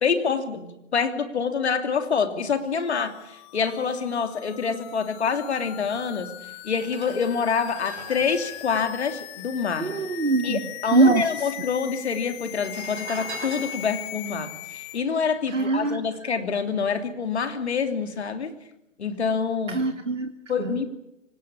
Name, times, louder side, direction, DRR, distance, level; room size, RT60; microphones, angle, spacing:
voice 1, 0.0-6.3 6.6-9.9 10.4-18.5 19.0-19.8 20.5-20.9, left 6 dB, 55° left, 8 dB, 3.0 m, -26 dB
sound 1, 2.7-15.0, left 16 dB, 20° left, 1.0 m, -40 dB
sound 2, 6.1-6.2 6.7-10.4 10.7-10.8 11.0-11.7 12.3-15.8 16.3-16.5, right 4 dB, 60° right, 5.9 m, -43 dB
voice 2, 9.8-10.6 10.9-11.3 15.5-16.0 19.7-20.3 20.6-20.8, right 3 dB, 75° right, 8 dB, 1.8 m, -22 dB
25.0 x 18.5 x 8.7 m, 0.87 s
figure-of-eight pair, 125°, 38 cm